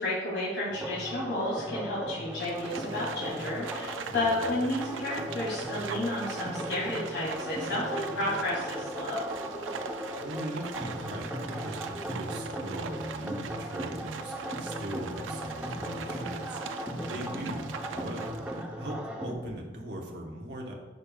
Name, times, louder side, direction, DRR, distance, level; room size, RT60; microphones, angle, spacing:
voice 1, 0.0-9.3 17.3-17.4, left 1 dB, 80° left, -6 dB, 1.9 m, -32 dB
sound 1, 0.7-19.3, equal, 5° right, 0.6 m, -37 dB
Livestock farm animals working animals, 2.3-18.7, right 6 dB, 85° right, 0.4 m, -41 dB
voice 2, 4.0-4.4 9.7-20.7, right 1 dB, 60° right, -1 dB, 1.0 m, -40 dB
9.7 x 5.2 x 2.3 m, 1.3 s
head